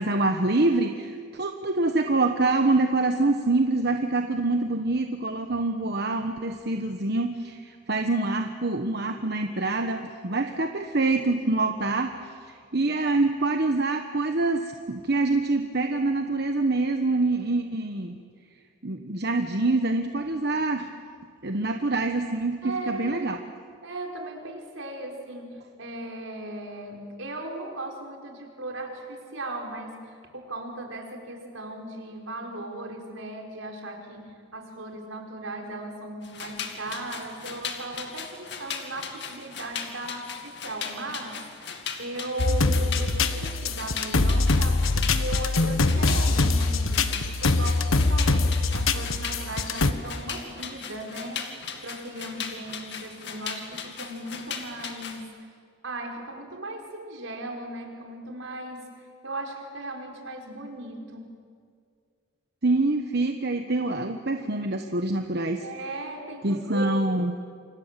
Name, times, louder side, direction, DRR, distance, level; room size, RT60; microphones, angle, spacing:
voice 1, 0.0-18.2 18.8-20.9 21.4-23.4 62.6-65.6 66.4-67.3, right 2 dB, 50° right, 5 dB, 1.2 m, -25 dB
voice 2, 22.6-23.3 23.8-51.5 51.8-55.3 55.8-61.3 65.6-66.9, right 1 dB, 75° right, 2 dB, 4.8 m, -37 dB
sound 1, 36.2-55.2, left 6 dB, 55° left, 2.3 m, -38 dB
sound 2, 42.4-49.9, left 3 dB, 85° left, 1.3 m, -23 dB
29.0 x 26.0 x 7.6 m, 2.1 s
head